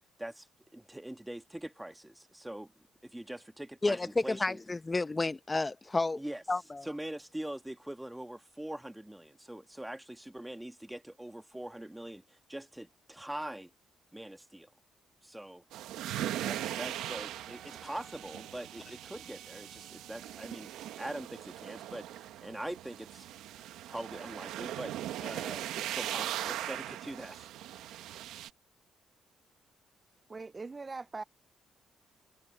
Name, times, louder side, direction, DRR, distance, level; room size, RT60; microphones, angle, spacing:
voice 1, 0.7-4.6 6.1-6.4 6.8-13.7 14.1-14.7 15.2-15.6 16.4-23.3 23.9-24.9 25.2-27.5 27.8-28.0, right 1 dB, 5° right, 1.9 m, -43 dB
voice 2, 3.8-6.2 6.5-6.9, left 3 dB, 20° left, 0.8 m, -31 dB
sound 1, 15.7-28.5, right 12 dB, 90° right, 1.2 m, -40 dB
Wind instrument woodwind instrument, 17.3-21.2, right 6 dB, 45° right, 7.4 m, -59 dB
voice 3, 30.3-31.2, right 3 dB, 25° right, 0.3 m, -41 dB
cardioid pair, 90°, 0 cm